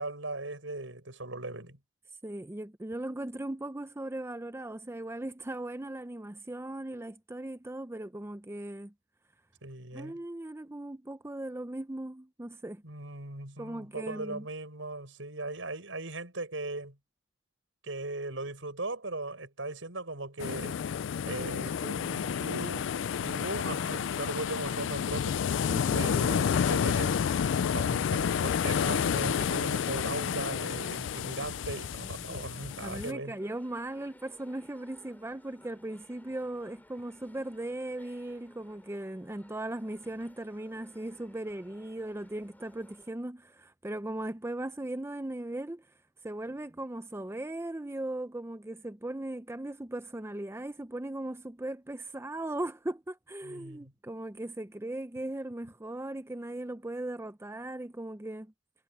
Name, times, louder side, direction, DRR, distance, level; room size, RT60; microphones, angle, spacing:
voice 1, 0.0-1.8 9.6-10.2 12.8-17.0 17.8-20.8 21.2-25.4 25.9-27.2 27.6-33.4 53.4-53.9, right 2 dB, 80° right, 6.2 m, -38 dB
voice 2, 2.2-8.9 9.9-12.8 13.6-14.5 25.7-26.2 32.3-45.9 46.2-58.5, right 1 dB, 15° right, 0.6 m, -38 dB
sound 1, 20.4-33.1, left 7 dB, 70° left, 0.4 m, -30 dB
sound 2, 32.7-43.1, left 1 dB, 10° left, 5.4 m, -59 dB
head